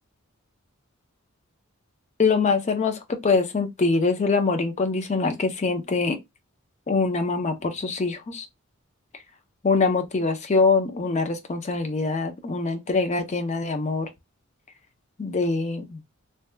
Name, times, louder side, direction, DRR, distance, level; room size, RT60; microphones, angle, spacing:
voice 1, 2.2-6.2 6.9-8.5 9.6-14.1 15.2-16.0, left 4 dB, 35° left, 0.5 m, -24 dB
2.7 x 2.2 x 3.2 m
head